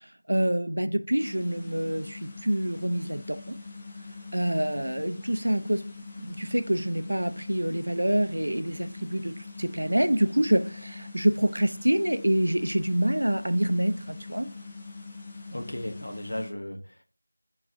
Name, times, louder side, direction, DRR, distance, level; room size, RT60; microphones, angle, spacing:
voice 1, 0.0-3.6 4.3-5.8 6.2-14.5, right 1 dB, 65° right, 0.3 m, -26 dB
sound 1, 1.2-16.5, left 4 dB, 10° left, 0.3 m, -43 dB
voice 2, 15.5-17.0, left 1 dB, 60° left, 0.6 m, -35 dB
3.8 x 2.3 x 3.4 m
figure-of-eight pair, 175°, 0 cm